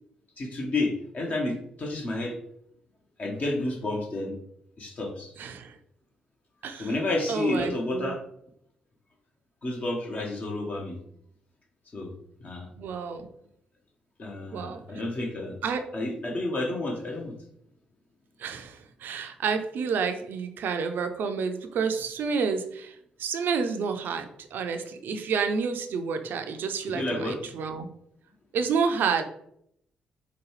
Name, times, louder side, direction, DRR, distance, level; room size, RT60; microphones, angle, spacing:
voice 1, 0.4-2.4 3.2-4.4 4.8-5.4 6.8-8.2 9.6-11.0 11.9-12.1 12.4-12.7 14.2-17.3 26.9-27.4, left 2 dB, 45° left, 0 dB, 0.9 m, -30 dB
voice 2, 5.4-5.8 6.6-6.9 7.3-8.1 12.8-13.3 14.5-14.8 15.6-15.8 18.4-22.9 23.2-27.9 28.5-29.2, right 5 dB, 65° right, 7 dB, 0.5 m, -29 dB
4.9 x 2.3 x 3.1 m, 0.72 s
hypercardioid pair, 45°, 4 cm